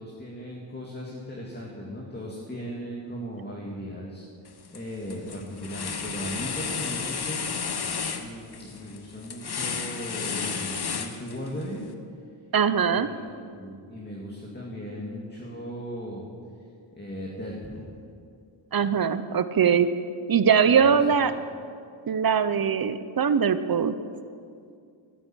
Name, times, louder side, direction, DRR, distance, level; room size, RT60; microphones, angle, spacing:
voice 1, 0.0-4.2 4.7-7.4 8.2-11.9 12.9-16.3 17.0-17.9 20.7-20.8 21.1-21.2, equal, 20° left, -3 dB, 2.1 m, -37 dB
sound 1, 4.5-4.8 5.1-11.6, left 6 dB, 50° left, 1.1 m, -32 dB
voice 2, 12.5-13.1 18.7-19.9 20.3-21.3 22.1-23.9, right 7 dB, 45° right, 12 dB, 0.7 m, -21 dB
13.0 x 9.8 x 9.0 m, 2.3 s
wide cardioid pair, 125°, 50 cm